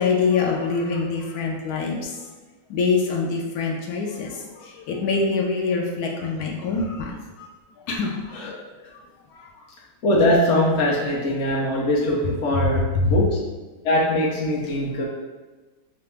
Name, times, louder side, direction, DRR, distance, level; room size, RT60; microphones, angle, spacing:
voice 1, 0.0-2.2 2.7-7.5 7.8-8.4 8.9-9.0 9.3-9.5 12.5-13.2, left 4 dB, 85° left, -1 dB, 1.1 m, -25 dB
voice 2, 8.3-8.6 10.0-13.4 13.8-15.0, left 1 dB, 55° left, -4 dB, 1.1 m, -22 dB
5.7 x 2.0 x 3.2 m, 1.3 s
omnidirectional pair, 1.6 m